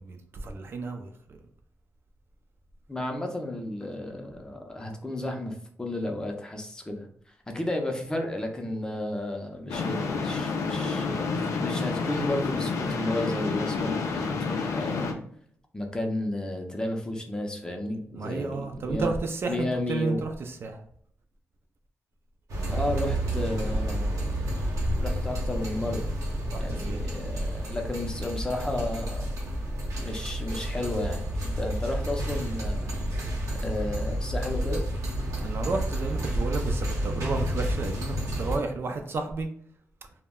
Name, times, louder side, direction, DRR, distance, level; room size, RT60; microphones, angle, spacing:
voice 1, 0.0-1.4 18.1-20.8 26.5-27.0 35.4-39.5, right 3 dB, 50° right, 5 dB, 0.3 m, -32 dB
voice 2, 2.9-7.1 7.5-11.3 11.6-15.2 15.7-19.1 19.5-20.2 22.7-24.1 25.0-26.1 26.6-29.3 30.0-32.9 33.6-34.8, left 1 dB, 15° left, 2 dB, 0.5 m, -32 dB
sound 1, 9.7-15.1, left 4 dB, 85° left, 0.4 m, -29 dB
sound 2, 22.5-38.6, equal, 85° right, 0.7 m, -30 dB
2.1 x 2.0 x 3.5 m, 0.62 s
cardioid pair, 100°, 5 cm